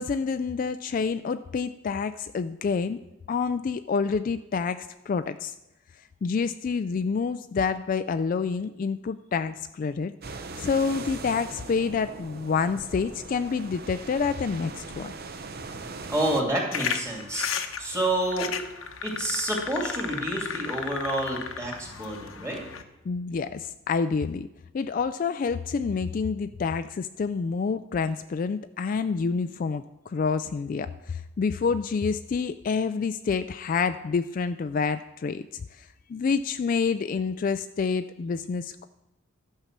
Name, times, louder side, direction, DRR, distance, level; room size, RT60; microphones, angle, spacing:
voice 1, 0.0-3.0 3.3-5.5 6.2-10.1 10.6-15.1 23.1-24.5 24.7-38.9, left 5 dB, 40° left, 11 dB, 0.3 m, -28 dB
sound 1, 10.2-16.4, right 3 dB, 50° right, 0.7 m, -40 dB
voice 2, 16.1-17.5 17.8-18.5 19.0-22.6, right 1 dB, 15° right, -1 dB, 2.7 m, -28 dB
sound 2, 16.7-22.8, left 6 dB, 80° left, 0.9 m, -34 dB
12.0 x 5.6 x 7.3 m, 0.94 s
head